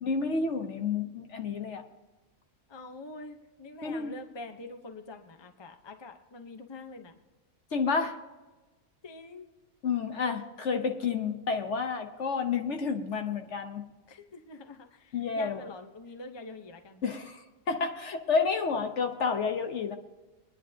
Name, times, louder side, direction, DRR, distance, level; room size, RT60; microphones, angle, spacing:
voice 1, 0.0-1.8 3.8-4.1 7.7-8.2 9.8-13.8 15.1-15.7 17.0-17.4 17.7-20.0, left 5 dB, 55° left, 5 dB, 1.3 m, -30 dB
voice 2, 2.7-7.1 9.0-9.5 14.1-17.0, left 3 dB, 20° left, 6 dB, 0.8 m, -45 dB
23.0 x 10.0 x 2.8 m, 1.2 s
omnidirectional pair, 1.5 m